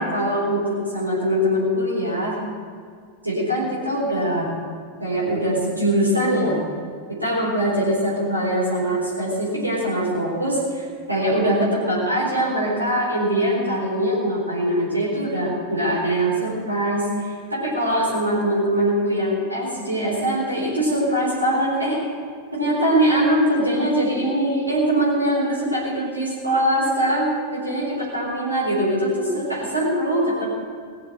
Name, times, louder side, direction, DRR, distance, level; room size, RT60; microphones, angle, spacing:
voice 1, 0.0-2.4 3.2-4.5 5.0-6.6 7.1-22.0 22.5-30.5, right 1 dB, 85° right, -6 dB, 4.1 m, -22 dB
19.0 x 7.2 x 7.9 m, 2.1 s
figure-of-eight pair, 90°, 0 cm